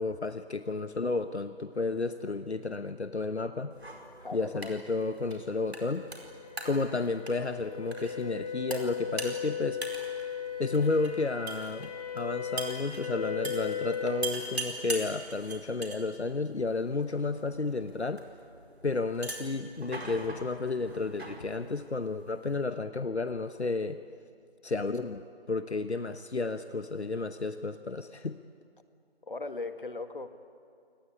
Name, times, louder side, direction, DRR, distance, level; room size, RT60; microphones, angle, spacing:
voice 1, 0.0-3.7 4.3-6.0 6.6-9.8 10.6-18.2 18.8-24.0 24.6-28.4, left 3 dB, 80° left, 10 dB, 1.1 m, -32 dB
sound 1, 3.7-22.6, right 2 dB, 70° right, 4.8 m, -43 dB
voice 2, 4.2-4.7 29.3-30.3, left 3 dB, 50° left, 10 dB, 1.7 m, -38 dB
sound 2, 4.4-14.3, left 8 dB, 35° left, 4.0 m, -38 dB
28.0 x 19.5 x 9.9 m, 2.4 s
figure-of-eight pair, 165°, 33 cm